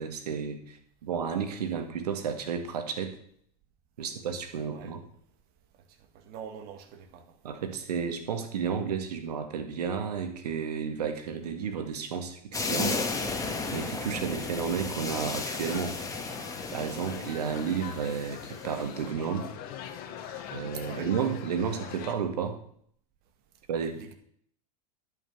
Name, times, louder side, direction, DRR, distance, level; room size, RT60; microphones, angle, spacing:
voice 1, 0.0-3.1 4.0-5.0 7.4-13.0 13.7-16.0 16.7-18.4 18.6-19.5 20.5-22.6 23.7-24.0, right 6 dB, 75° right, 1.8 m, -32 dB
voice 2, 6.1-7.4 20.7-21.1 23.8-24.1, right 7 dB, 50° right, 1.9 m, -45 dB
sound 1, 12.5-18.8, left 3 dB, 15° left, 2.0 m, -34 dB
sound 2, 15.1-22.1, left 9 dB, 50° left, 1.7 m, -42 dB
11.0 x 5.9 x 7.2 m
hypercardioid pair, 95°, 20 cm